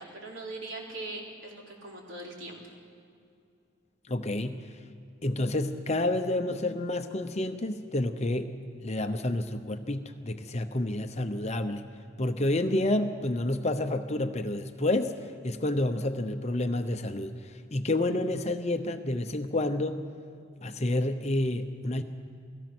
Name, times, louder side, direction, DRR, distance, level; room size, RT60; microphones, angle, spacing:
voice 1, 0.0-2.7, right 2 dB, 60° right, -1 dB, 3.9 m, -41 dB
voice 2, 4.1-4.7 5.2-8.5 8.8-11.9 12.2-20.0 20.6-22.0, left 1 dB, 30° left, 7 dB, 0.8 m, -29 dB
28.5 x 17.5 x 6.2 m, 2.5 s
head